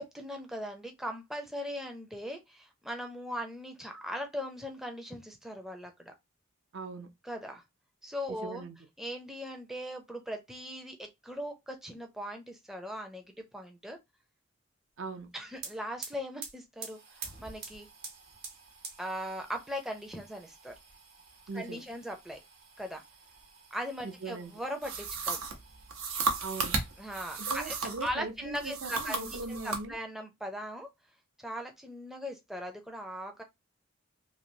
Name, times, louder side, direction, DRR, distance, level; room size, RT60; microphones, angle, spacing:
voice 1, 0.0-6.1 7.2-7.6 8.0-8.6 9.0-14.0 15.3-17.9 19.0-20.7 21.5-22.4 22.8-23.0 23.7-25.4 27.0-27.8 28.0-30.9 31.4-33.4, equal, ahead, 0.4 m, -39 dB
voice 2, 6.7-7.1 8.3-8.8 15.0-15.3 21.5-21.8 24.0-24.5 26.4-26.8 27.4-29.9, right 3 dB, 65° right, 0.5 m, -40 dB
sound 1, 15.2-15.3 15.5-27.5 27.9-28.7 29.0-30.0, right 5 dB, 50° right, 1.0 m, -49 dB
sound 2, 24.8-28.1 28.5-29.8, right 4 dB, 90° right, 0.8 m, -34 dB
3.1 x 2.6 x 2.6 m
head